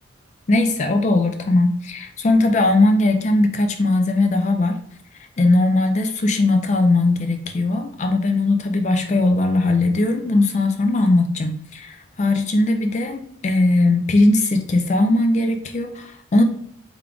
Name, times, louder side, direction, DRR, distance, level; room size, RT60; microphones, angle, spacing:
voice 1, 0.5-4.8 5.4-16.4, left 2 dB, 35° left, 6 dB, 0.3 m, -19 dB
3.7 x 3.5 x 2.3 m, 0.65 s
head